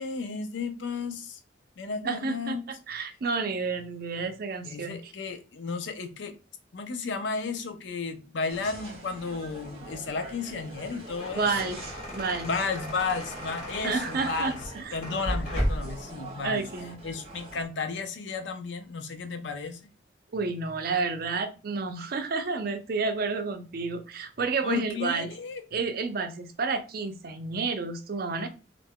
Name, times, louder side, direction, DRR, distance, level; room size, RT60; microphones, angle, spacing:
voice 1, 0.0-1.4 1.8-2.7 4.6-6.4 6.7-11.7 12.4-14.6 14.9-16.6 17.0-19.8 24.6-25.6, left 4 dB, 80° left, 0.5 m, -33 dB
voice 2, 2.0-5.1 11.3-12.5 13.8-15.0 16.4-17.0 20.3-25.3 25.7-28.5, right 4 dB, 55° right, 0.4 m, -30 dB
sound 1, 8.5-17.6, right 2 dB, 35° right, 0.8 m, -44 dB
sound 2, 10.8-16.0, equal, 45° left, 1.1 m, -34 dB
2.4 x 2.2 x 3.5 m
head